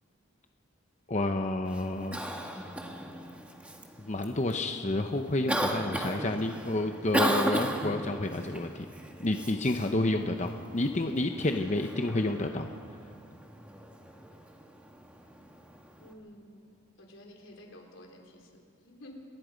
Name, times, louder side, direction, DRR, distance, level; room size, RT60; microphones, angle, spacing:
voice 1, 1.1-2.2 2.5-2.6 4.0-8.9 9.2-12.7, left 2 dB, 35° left, 5 dB, 0.8 m, -30 dB
Cough, 1.6-16.1, right 1 dB, 5° right, 1.5 m, -36 dB
voice 2, 9.3-9.6 16.0-19.2, left 1 dB, 85° left, 1 dB, 4.0 m, -51 dB
28.0 x 19.5 x 5.2 m, 2.2 s
head